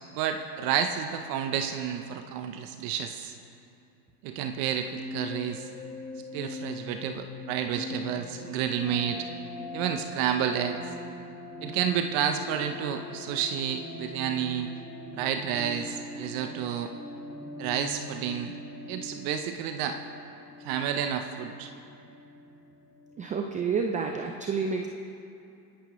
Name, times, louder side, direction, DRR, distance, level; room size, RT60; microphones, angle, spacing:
voice 1, 0.1-3.3 4.2-5.7 6.3-9.3 9.7-10.8 11.6-14.7 15.2-16.9 17.6-18.5 18.9-20.0 20.6-21.7, right 8 dB, 45° right, 6 dB, 0.8 m, -30 dB
sound 1, 4.4-23.9, left 2 dB, 10° left, 1.4 m, -42 dB
voice 2, 23.2-24.9, right 5 dB, 15° right, 4 dB, 0.5 m, -29 dB
24.0 x 11.5 x 3.1 m, 2.7 s
supercardioid pair, 120°, 49 cm